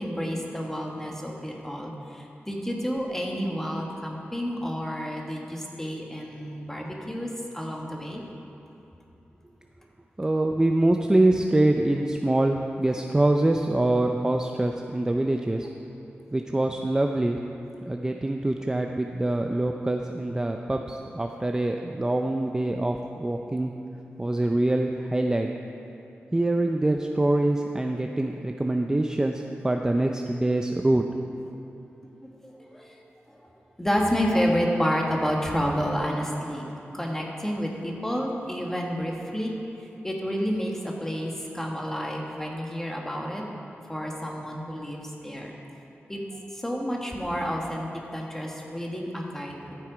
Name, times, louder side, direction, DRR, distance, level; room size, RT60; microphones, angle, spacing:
voice 1, 0.0-8.2 32.4-33.0 33.4-33.5 33.8-36.7 36.9-39.5 39.8-43.4 43.9-45.5 46.1-49.8, equal, 10° left, -1 dB, 1.5 m, -30 dB
voice 2, 10.2-15.7 16.3-17.4 17.9-23.7 24.2-25.5 26.3-31.1, right 1 dB, 15° right, 3 dB, 0.4 m, -24 dB
13.0 x 7.6 x 5.0 m, 3.0 s
wide cardioid pair, 100°, 4 cm